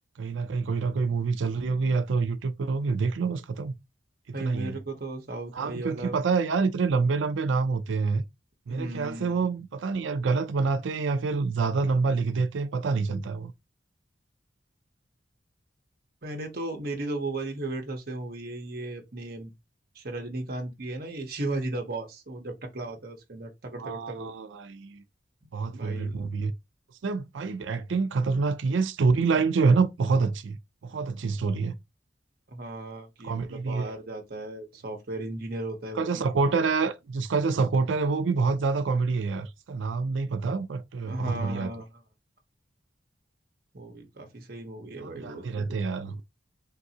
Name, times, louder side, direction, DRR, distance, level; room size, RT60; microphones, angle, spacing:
voice 1, 0.2-3.7 4.4-4.8 5.5-8.2 8.7-13.5 23.8-25.0 25.5-26.5 27.0-31.7 33.2-34.0 35.9-41.7 45.0-46.2, right 4 dB, 85° right, 0.4 m, -27 dB
voice 2, 4.3-6.2 8.7-9.3 16.2-19.5 19.9-24.3 25.7-26.3 32.5-36.3 41.0-41.8 43.7-45.6, right 2 dB, 55° right, 1.0 m, -36 dB
3.7 x 2.6 x 2.8 m
head